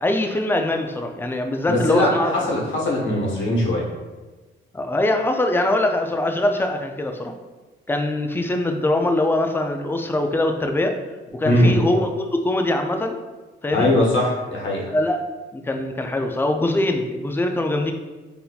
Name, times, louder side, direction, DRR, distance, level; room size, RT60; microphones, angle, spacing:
voice 1, 0.0-2.4 4.7-7.3 7.9-11.0 11.3-13.2 13.6-13.9 14.9-15.2 15.5-17.9, left 1 dB, 10° left, 5 dB, 0.3 m, -22 dB
voice 2, 1.7-3.8 11.4-11.7 13.7-14.9, left 1 dB, 70° left, -3 dB, 1.1 m, -20 dB
3.9 x 2.7 x 2.3 m, 1.2 s
cardioid pair, 90°, 20 cm